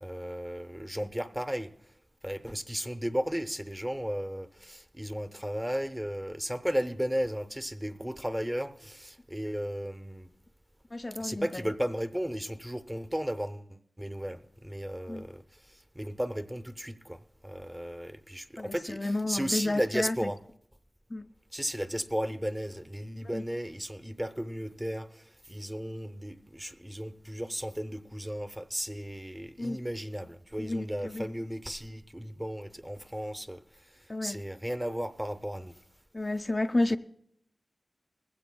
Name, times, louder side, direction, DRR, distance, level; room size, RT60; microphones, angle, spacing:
voice 1, 0.0-1.7 2.2-10.3 11.2-15.4 16.0-20.4 21.5-25.1 25.5-33.6 34.2-35.7, equal, 10° right, 0.7 m, -34 dB
voice 2, 10.9-11.7 15.1-15.2 18.6-20.3 21.1-21.2 23.2-23.4 29.6-29.8 30.6-31.3 34.1-34.4 36.1-37.0, left 2 dB, 40° left, 0.4 m, -31 dB
20.0 x 15.5 x 2.3 m
cardioid pair, 45°, 0 cm